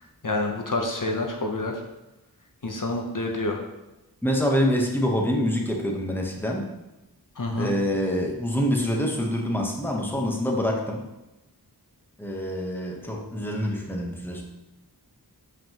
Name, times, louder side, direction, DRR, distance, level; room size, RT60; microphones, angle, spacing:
voice 1, 0.2-1.8 2.6-3.6 7.4-7.7, left 2 dB, 50° left, 2 dB, 0.8 m, -28 dB
voice 2, 4.2-6.7 7.6-11.0 12.2-14.4, equal, 5° left, 0 dB, 0.9 m, -26 dB
7.4 x 5.3 x 2.9 m, 0.99 s
wide cardioid pair, 50°, 40 cm